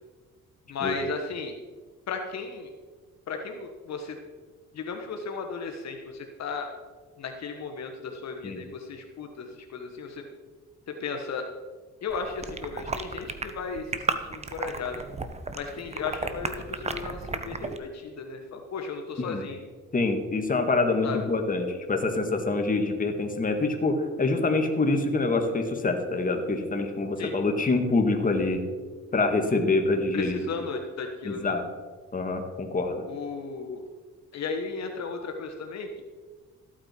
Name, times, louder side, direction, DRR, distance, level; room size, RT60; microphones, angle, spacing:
voice 1, 0.7-1.5 2.1-2.7 3.3-4.2 4.7-6.7 7.2-10.2 10.9-11.5 12.0-15.0 15.5-19.6 21.0-21.2 27.2-27.3 30.1-31.5 33.1-33.8 34.3-36.0, left 4 dB, 60° left, 4 dB, 1.3 m, -35 dB
sound 1, 12.1-17.8, right 3 dB, 20° right, 0.9 m, -34 dB
voice 2, 19.9-28.6 29.1-30.5 31.2-31.7 32.1-33.0, left 3 dB, 25° left, 4 dB, 1.8 m, -26 dB
14.0 x 8.9 x 4.5 m, 1.4 s
cardioid pair, 90°, 30 cm